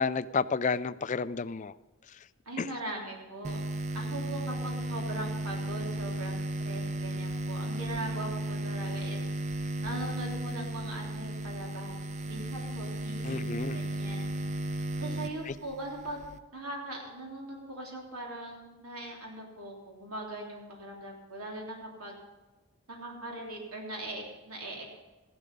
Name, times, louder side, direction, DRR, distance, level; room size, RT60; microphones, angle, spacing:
voice 1, 0.0-1.7 2.6-2.7 13.2-13.8, left 5 dB, 35° left, 14 dB, 0.4 m, -30 dB
voice 2, 2.4-3.6 3.9-9.2 9.8-12.0 12.2-13.4 13.7-14.3 15.0-16.2 16.5-22.1 22.9-24.9, right 1 dB, 85° right, 0 dB, 3.3 m, -40 dB
sound 1, 3.4-16.4, right 1 dB, 30° right, 0.6 m, -35 dB
15.0 x 12.0 x 5.4 m, 1.2 s
head